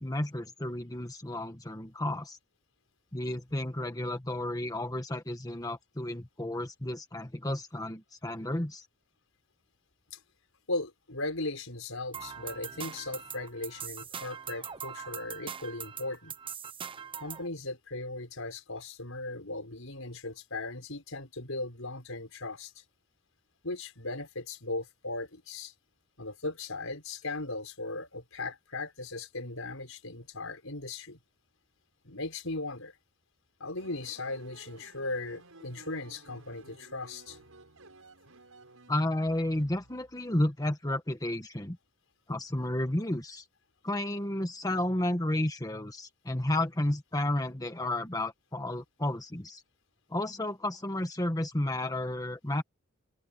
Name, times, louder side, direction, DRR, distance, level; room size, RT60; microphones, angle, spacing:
voice 1, 0.0-2.4 3.1-8.9 38.9-41.8 42.3-43.4 43.8-49.6 50.1-52.6, left 1 dB, 20° left, 1.5 m, -32 dB
voice 2, 10.7-16.4 17.2-22.8 23.6-25.7 26.2-31.2 32.0-32.9 33.6-37.4, left 2 dB, 75° left, 5.6 m, -38 dB
sound 1, 12.1-17.5, right 7 dB, 25° right, 1.0 m, -41 dB
sound 2, 33.8-40.4, right 2 dB, 85° right, 5.9 m, -55 dB
head